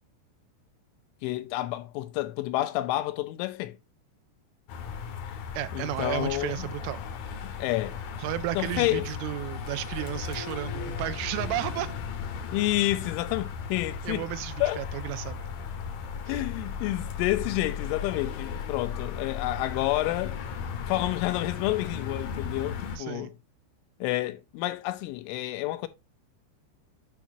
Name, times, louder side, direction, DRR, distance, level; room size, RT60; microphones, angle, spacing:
voice 1, 1.2-3.8 5.2-5.4 5.7-6.6 7.4-8.0 8.6-9.1 12.5-14.2 14.6-14.8 16.3-20.4 20.9-23.3 24.0-25.9, left 17 dB, 85° left, 3.2 m, -29 dB
sound 1, 4.7-23.0, left 6 dB, 70° left, 2.2 m, -36 dB
voice 2, 5.5-7.0 8.2-11.9 14.0-15.4 23.0-23.3, right 15 dB, 85° right, 3.1 m, -33 dB
8.8 x 5.9 x 2.6 m
omnidirectional pair, 5.5 m